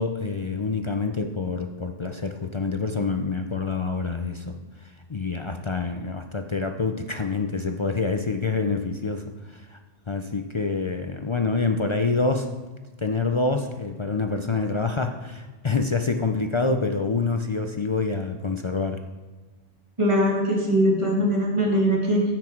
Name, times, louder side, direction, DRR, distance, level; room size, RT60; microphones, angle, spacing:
voice 1, 0.0-4.6 5.1-9.8 10.1-12.5 13.0-19.0, left 4 dB, 35° left, 6 dB, 0.5 m, -26 dB
voice 2, 20.0-22.2, equal, 30° right, -2 dB, 2.1 m, -21 dB
15.5 x 6.0 x 4.5 m, 1.3 s
omnidirectional pair, 1.1 m